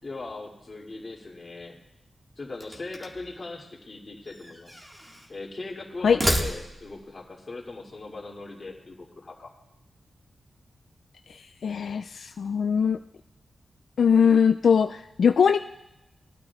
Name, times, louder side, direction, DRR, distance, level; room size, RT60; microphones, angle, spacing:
voice 1, 0.0-1.8 2.4-4.8 5.3-9.5, left 3 dB, 35° left, -2 dB, 2.6 m, -39 dB
sound 1, 2.5-3.3 4.2-5.3 6.0-7.0, equal, 20° right, 1.6 m, -31 dB
voice 2, 11.3-13.0 14.0-15.6, left 6 dB, 70° left, 6 dB, 0.4 m, -21 dB
21.0 x 12.5 x 2.4 m, 0.92 s
wide cardioid pair, 150°, 0 cm